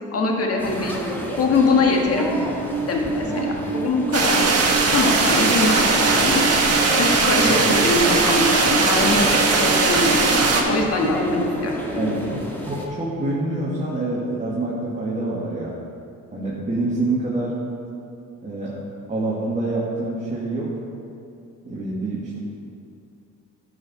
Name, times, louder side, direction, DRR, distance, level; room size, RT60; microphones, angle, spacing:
voice 1, 0.1-0.9 1.4-2.3 2.9-6.5 7.0-12.2, left 3 dB, 50° left, 0 dB, 1.6 m, -23 dB
sound 1, 0.6-12.9, equal, 5° left, 1.7 m, -31 dB
Alarm, 2.2-11.1, right 4 dB, 75° right, 0.8 m, -30 dB
sound 2, 4.1-10.6, right 4 dB, 50° right, 1.4 m, -19 dB
voice 2, 11.9-15.7 16.3-17.5 18.4-18.8 19.1-20.8 21.6-22.4, right 2 dB, 25° right, -7 dB, 1.9 m, -26 dB
11.0 x 6.2 x 4.2 m, 2.5 s
cardioid pair, 90°, 31 cm